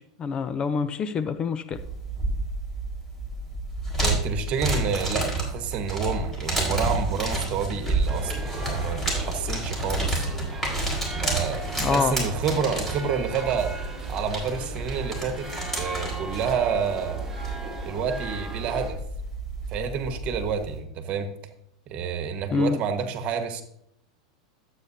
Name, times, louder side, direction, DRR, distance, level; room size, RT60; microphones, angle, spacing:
voice 1, 0.0-1.8 11.8-12.2 22.5-22.8, left 5 dB, 30° left, 13 dB, 0.5 m, -26 dB
sound 1, 1.7-20.8, right 2 dB, 10° left, 4.4 m, -30 dB
voice 2, 4.0-10.3 11.1-13.7 14.1-15.5 15.7-17.2 17.8-19.0 19.7-21.3 21.9-23.6, right 6 dB, 45° right, 7 dB, 1.4 m, -29 dB
sound 2, 8.1-18.9, right 2 dB, 10° right, 2.9 m, -39 dB
12.0 x 8.4 x 2.8 m, 0.73 s
hypercardioid pair, 100°, 3 cm